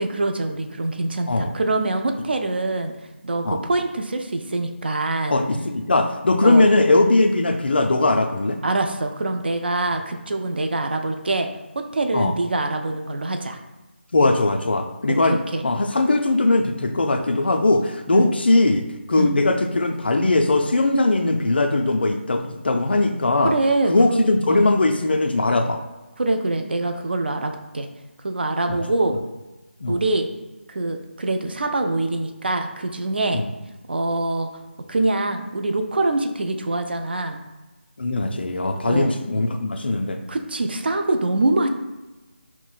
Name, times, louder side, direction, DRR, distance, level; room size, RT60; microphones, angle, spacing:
voice 1, 0.0-2.9 3.2-5.4 6.4-6.7 8.6-11.5 11.7-13.6 15.3-15.6 18.1-18.3 19.1-19.4 23.4-24.7 26.2-27.9 28.2-29.2 29.9-30.3 30.7-33.4 33.9-34.5 34.9-37.4 38.8-39.1 40.3-41.7, right 2 dB, 55° right, 5 dB, 0.4 m, -24 dB
voice 2, 5.3-8.6 12.1-12.3 14.1-23.6 23.9-25.8 28.7-28.8 29.8-30.0 33.3-33.5 38.0-40.2, left 2 dB, 55° left, 5 dB, 0.4 m, -20 dB
5.8 x 2.0 x 2.4 m, 1.1 s
figure-of-eight pair, 165°, 7 cm